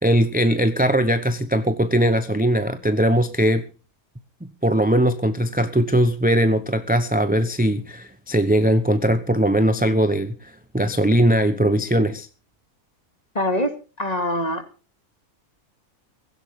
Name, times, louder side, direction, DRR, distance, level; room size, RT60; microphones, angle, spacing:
voice 1, 0.0-3.7 4.6-12.3, right 1 dB, 5° right, 10 dB, 0.8 m, -20 dB
voice 2, 13.3-13.7 14.0-14.6, left 1 dB, 25° left, 7 dB, 2.5 m, -23 dB
16.5 x 16.5 x 3.7 m, 0.35 s
omnidirectional pair, 1.6 m